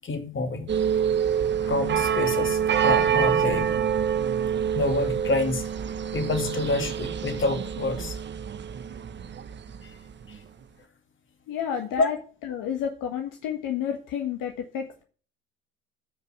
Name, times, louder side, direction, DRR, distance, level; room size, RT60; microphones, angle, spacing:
voice 1, 0.0-0.7 1.6-3.7 4.7-5.6 6.1-8.2 9.8-9.9 10.3-10.4 12.0-12.1, left 3 dB, 30° left, 2.8 m, -27 dB
sound 1, 0.7-9.9 10.2-10.4, right 8 dB, 25° right, 0.9 m, -26 dB
voice 2, 11.5-12.2 12.4-15.0, left 8 dB, 50° left, 1.6 m, -30 dB
14.5 x 5.5 x 6.0 m
figure-of-eight pair, 65°, 40 cm